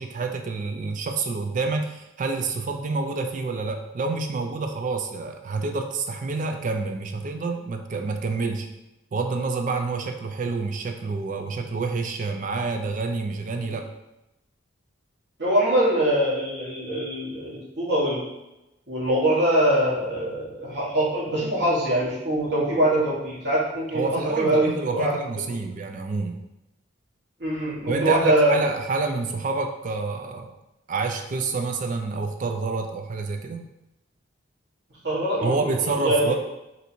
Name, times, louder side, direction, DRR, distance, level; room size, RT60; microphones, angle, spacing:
voice 1, 0.0-8.7 9.1-13.9 23.9-26.4 27.9-30.5 30.9-33.7 35.4-36.3, right 3 dB, 40° right, 5 dB, 0.3 m, -28 dB
voice 2, 15.4-18.2 18.9-24.0 24.4-25.4 27.4-28.6 35.0-36.4, right 1 dB, 60° right, -7 dB, 1.1 m, -23 dB
2.7 x 2.6 x 4.2 m, 0.94 s
head